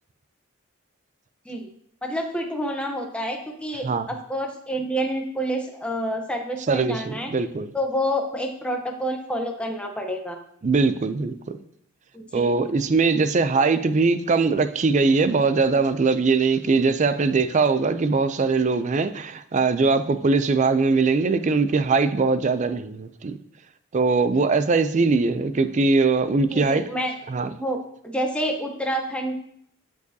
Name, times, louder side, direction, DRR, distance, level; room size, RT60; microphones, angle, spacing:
voice 1, 2.0-7.3 7.7-10.4 12.1-12.6 26.5-27.8 28.0-29.4, equal, 5° left, 0.8 m, -28 dB
voice 2, 6.7-7.7 10.6-11.3 12.3-23.4 23.9-26.8 27.3-27.5, right 4 dB, 35° right, 0.4 m, -21 dB
12.5 x 4.7 x 2.8 m
head